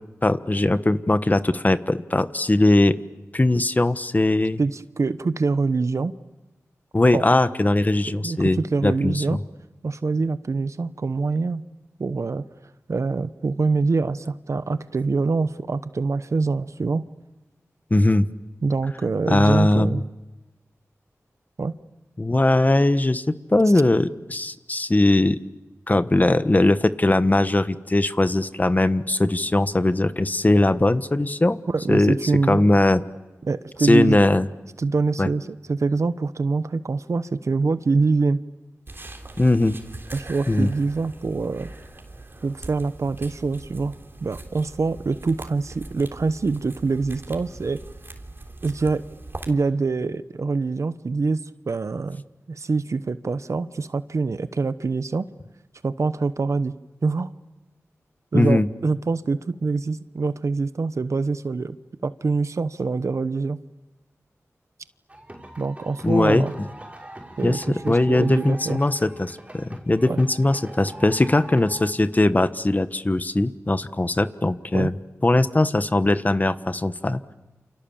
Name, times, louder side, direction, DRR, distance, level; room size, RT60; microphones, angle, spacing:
voice 1, 0.2-3.0 3.3-4.6 6.9-9.4 17.9-18.2 19.3-20.0 22.2-23.2 23.5-25.4 25.9-31.6 31.9-32.2 32.5-33.0 33.8-34.5 35.2-35.3 39.4-39.8 40.5-40.7 58.3-58.7 66.0-66.7 67.4-77.3, left 2 dB, 30° left, 12 dB, 1.3 m, -20 dB
voice 2, 4.6-6.1 7.1-7.2 8.1-9.4 9.8-11.6 12.0-12.4 12.9-17.1 18.6-20.1 21.6-21.8 31.7-32.6 33.4-34.2 34.8-38.4 40.1-41.7 42.4-43.9 44.2-47.8 48.6-49.0 49.5-55.3 55.8-56.7 57.0-57.3 58.3-61.8 62.0-63.6 65.6-66.5 67.4-68.8 70.1-70.2 74.7-74.9, right 4 dB, 65° right, 13 dB, 1.0 m, -25 dB
sound 1, 38.9-49.5, right 2 dB, 45° right, 3.5 m, -41 dB
sound 2, 65.1-71.9, right 1 dB, 25° right, 5.9 m, -42 dB
28.5 x 28.0 x 7.3 m, 1.1 s
cardioid pair, 55°, 6 cm